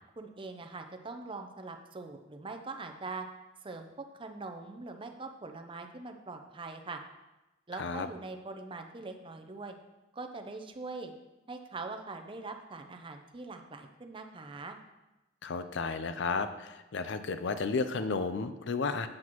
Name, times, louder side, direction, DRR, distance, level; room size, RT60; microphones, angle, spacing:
voice 1, 0.2-3.3 3.6-7.0 7.7-9.7 10.1-11.1 11.5-14.8, right 3 dB, 25° right, 5 dB, 0.6 m, -42 dB
voice 2, 15.4-19.1, left 4 dB, 60° left, 10 dB, 0.5 m, -33 dB
8.3 x 7.5 x 3.0 m, 1.0 s
head